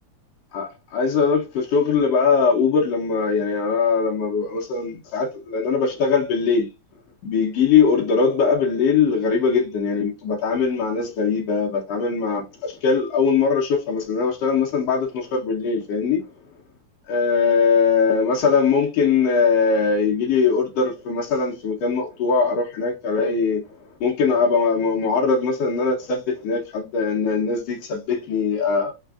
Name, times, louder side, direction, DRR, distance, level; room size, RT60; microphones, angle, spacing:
voice 1, 0.5-6.7 7.2-16.2 17.1-23.6 24.0-28.9, left 5 dB, 75° left, 1.5 m, -21 dB
4.5 x 3.3 x 2.3 m
omnidirectional pair, 3.5 m